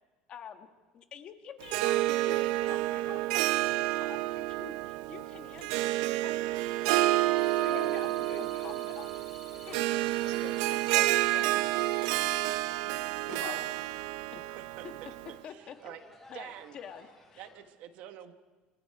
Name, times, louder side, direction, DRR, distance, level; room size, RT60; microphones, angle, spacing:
voice 1, 0.3-0.7 0.9-9.2 9.6-9.8 10.5-10.8 14.3-14.4 14.8-14.9 15.4-16.0 16.3-17.5, left 8 dB, 35° left, 7 dB, 1.4 m, -48 dB
Harp, 1.6-15.4, right 17 dB, 85° right, 0.7 m, -29 dB
sound 1, 7.1-17.6, left 2 dB, 10° left, 5.0 m, -59 dB
sound 2, 7.4-12.2, right 3 dB, 10° right, 4.4 m, -52 dB
voice 2, 7.6-8.1 8.4-8.5 9.5-13.6, left 7 dB, 65° left, 5 dB, 4.3 m, -46 dB
voice 3, 15.5-16.0 16.3-16.8 17.4-18.3, right 11 dB, 55° right, 8 dB, 1.3 m, -47 dB
27.5 x 24.5 x 4.7 m, 1.3 s
cardioid pair, 175°, 3 cm